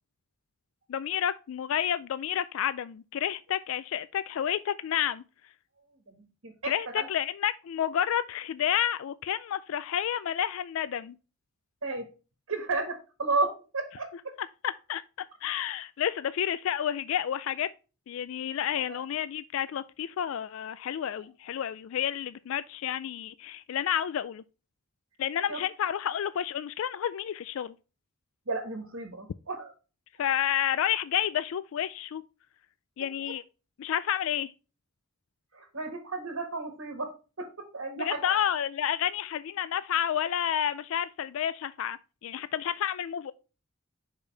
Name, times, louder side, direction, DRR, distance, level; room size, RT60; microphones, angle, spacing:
voice 1, 0.9-5.2 6.6-11.2 14.6-17.7 18.1-24.4 25.2-27.7 30.2-32.2 33.0-33.4 33.8-34.5 38.0-43.3, left 10 dB, 65° left, 0.3 m, -30 dB
voice 2, 6.1-7.1 11.8-12.0 12.5-14.3 25.5-25.6 28.5-29.7 33.2-33.3 35.5-37.1 37.4-38.3, right 3 dB, 70° right, 1.4 m, -33 dB
6.4 x 5.1 x 3.1 m
head